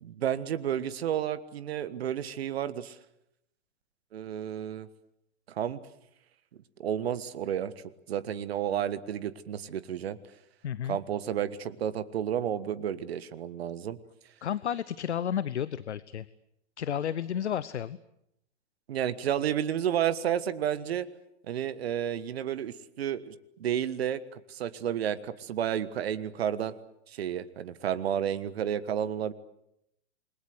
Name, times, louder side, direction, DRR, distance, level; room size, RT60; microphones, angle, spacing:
voice 1, 0.0-3.0 4.1-4.9 5.5-5.8 6.8-7.7 8.1-10.2 10.9-14.0 18.9-21.1 21.5-23.3 23.6-26.7 27.1-29.3, right 9 dB, 60° right, 14 dB, 1.5 m, -31 dB
voice 2, 10.6-11.0 14.4-16.3 16.8-18.0, left 9 dB, 70° left, 18 dB, 0.9 m, -32 dB
28.0 x 22.0 x 8.1 m, 0.79 s
figure-of-eight pair, 105°, 35 cm